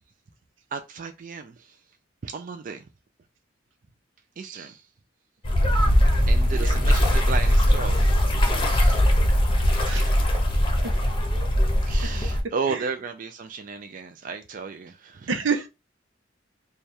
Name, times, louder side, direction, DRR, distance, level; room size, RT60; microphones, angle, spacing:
voice 1, 0.7-1.8 2.2-2.8 4.4-4.9 6.3-8.1 8.7-9.1 11.9-15.3, right 5 dB, 45° right, 0.4 m, -34 dB
sound 1, 5.4-12.4, equal, 25° left, 0.8 m, -20 dB
voice 2, 6.5-6.8 9.9-10.4 10.8-10.9 12.7-12.8 15.3-15.7, right 5 dB, 80° right, 0.7 m, -29 dB
3.3 x 2.3 x 4.3 m
head